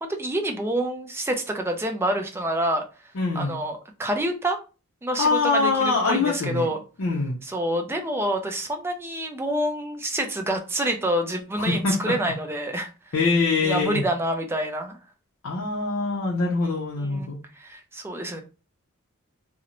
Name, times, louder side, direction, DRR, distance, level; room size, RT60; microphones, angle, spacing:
voice 1, 0.2-2.8 3.4-4.6 5.0-6.8 7.4-12.9 13.6-15.0 17.0-18.4, right 1 dB, 10° right, 3 dB, 0.3 m, -27 dB
voice 2, 3.1-3.6 5.2-6.7 7.0-7.4 11.6-12.2 13.1-14.0 15.4-17.4, left 3 dB, 70° left, -2 dB, 0.5 m, -24 dB
2.5 x 2.0 x 2.9 m, 0.33 s
head